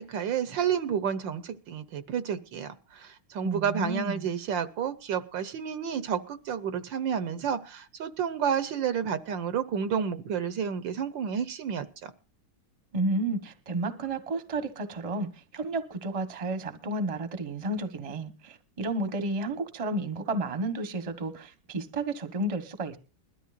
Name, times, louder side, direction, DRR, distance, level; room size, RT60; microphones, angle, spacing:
voice 1, 0.0-12.1, right 7 dB, 70° right, 1.4 m, -30 dB
voice 2, 3.4-4.3 12.9-23.0, right 2 dB, 20° right, 0.9 m, -32 dB
21.0 x 13.0 x 2.5 m
omnidirectional pair, 2.3 m